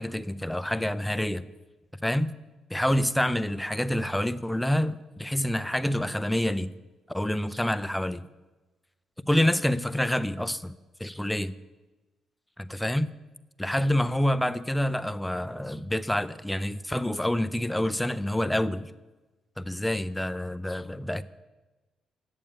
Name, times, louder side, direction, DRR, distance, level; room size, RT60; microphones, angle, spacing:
voice 1, 0.0-1.4 2.0-2.3 2.7-6.7 7.1-8.2 9.3-10.7 11.0-11.5 12.7-13.1 13.6-18.9 19.6-21.2, left 1 dB, 5° left, 0.4 m, -27 dB
8.6 x 7.1 x 8.6 m
cardioid pair, 90°, 0 cm